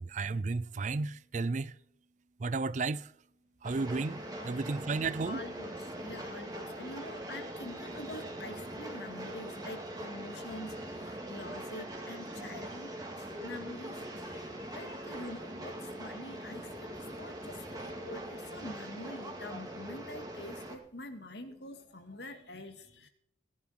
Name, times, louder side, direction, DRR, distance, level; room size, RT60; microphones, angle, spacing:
voice 1, 0.1-1.7 2.4-3.0 3.6-4.2 4.5-5.4, right 3 dB, 40° right, 0.4 m, -32 dB
Train, 3.6-20.8, right 1 dB, 20° right, 2.6 m, -42 dB
voice 2, 5.3-12.9 13.2-23.1, left 1 dB, 60° left, 2.3 m, -46 dB
18.5 x 11.0 x 4.5 m
head